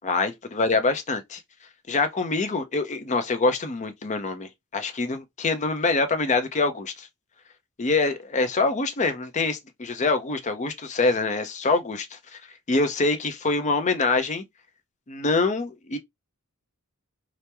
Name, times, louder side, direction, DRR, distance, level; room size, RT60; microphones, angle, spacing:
voice 1, 0.0-1.4 1.9-7.1 7.8-12.2 12.7-14.4 15.1-16.0, left 3 dB, 35° left, 0.6 m, -25 dB
2.9 x 2.1 x 3.3 m
head